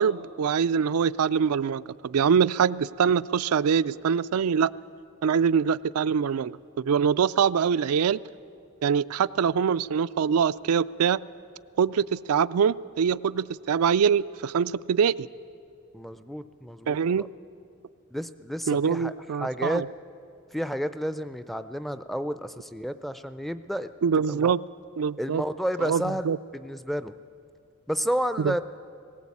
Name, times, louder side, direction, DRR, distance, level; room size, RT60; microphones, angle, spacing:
voice 1, 0.0-4.7 5.2-8.2 8.8-11.2 11.8-15.3 16.9-17.3 18.7-19.9 24.0-24.6 25.0-25.4 25.8-26.4 28.4-28.6, right 7 dB, 90° right, 14 dB, 0.4 m, -24 dB
voice 2, 15.9-17.3 18.1-19.1 19.4-19.8 20.5-23.9 24.3-24.5 25.2-26.3 26.5-27.1 27.9-28.6, equal, ahead, 12 dB, 0.4 m, -31 dB
19.0 x 18.0 x 8.5 m, 2.5 s
head